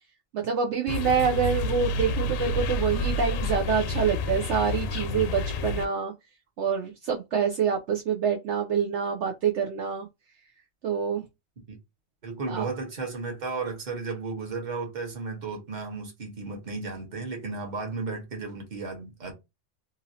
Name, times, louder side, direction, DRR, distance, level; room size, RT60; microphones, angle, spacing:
voice 1, 0.3-6.1 6.6-10.1 10.8-11.2 12.5-12.6, right 6 dB, 70° right, 0.8 m, -26 dB
sound 1, 0.9-5.9, left 2 dB, 85° left, 1.0 m, -29 dB
voice 2, 12.2-19.3, right 4 dB, 40° right, 1.1 m, -34 dB
3.0 x 2.6 x 2.7 m
omnidirectional pair, 1.3 m